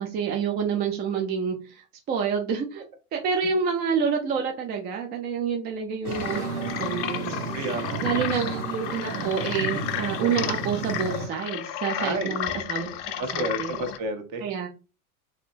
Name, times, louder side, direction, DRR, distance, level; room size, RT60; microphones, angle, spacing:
voice 1, 0.0-2.8 3.1-6.4 6.8-7.4 8.0-12.9 13.2-13.8 14.4-14.7, right 6 dB, 25° right, 3 dB, 0.3 m, -28 dB
sound 1, 6.0-14.0, left 12 dB, 50° left, 0.5 m, -33 dB
sound 2, 6.0-11.3, right 4 dB, 90° right, 0.6 m, -33 dB
voice 2, 7.5-8.2 12.0-12.4 13.2-14.4, right 2 dB, 40° right, 7 dB, 1.0 m, -31 dB
3.2 x 2.6 x 2.6 m, 0.32 s
hypercardioid pair, 85°, 45 cm